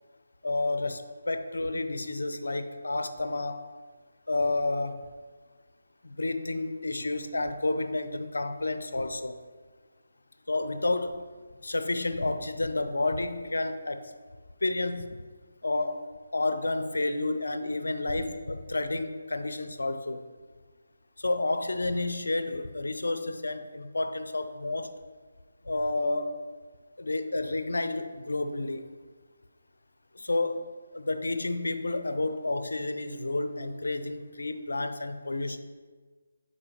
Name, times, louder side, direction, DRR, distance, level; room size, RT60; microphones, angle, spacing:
voice 1, 0.4-3.6 4.3-5.1 6.0-9.4 10.5-11.2 11.6-14.1 14.6-15.2 15.6-16.1 16.3-20.2 21.2-24.9 25.6-26.4 27.0-28.9 30.1-30.6 30.9-35.6, left 2 dB, 70° left, 9 dB, 0.5 m, -30 dB
9.9 x 4.2 x 3.0 m, 1.5 s
figure-of-eight pair, 150°, 0 cm